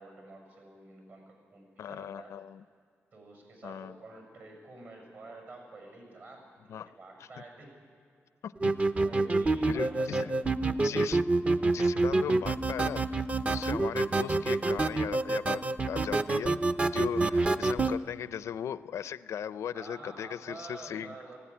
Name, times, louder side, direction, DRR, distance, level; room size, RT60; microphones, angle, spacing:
voice 1, 0.0-2.4 3.1-7.7 9.0-10.4 14.5-14.6 19.7-21.4, right 2 dB, 55° right, 2 dB, 6.7 m, -49 dB
voice 2, 1.8-2.6 3.6-4.0 6.7-7.0 8.4-8.7 9.7-10.3 10.7-11.2 11.7-21.1, left 9 dB, 90° left, 15 dB, 0.5 m, -38 dB
sound 1, 8.6-18.0, right 2 dB, 30° right, 0.6 m, -27 dB
19.0 x 16.0 x 9.9 m, 2.3 s
wide cardioid pair, 110°, 5 cm